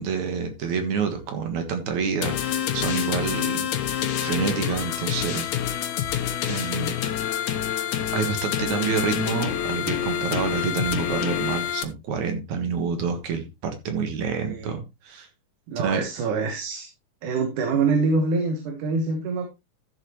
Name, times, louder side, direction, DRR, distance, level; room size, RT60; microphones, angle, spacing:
voice 1, 0.0-3.7 4.2-5.5 6.5-7.0 8.1-15.3 15.8-16.0, right 6 dB, 70° right, 6 dB, 2.8 m, -28 dB
sound 1, 2.2-11.8, left 10 dB, 70° left, 2.4 m, -27 dB
voice 2, 15.7-16.9 17.2-19.5, right 4 dB, 85° right, 5 dB, 2.9 m, -25 dB
13.5 x 7.3 x 3.1 m, 0.24 s
omnidirectional pair, 3.5 m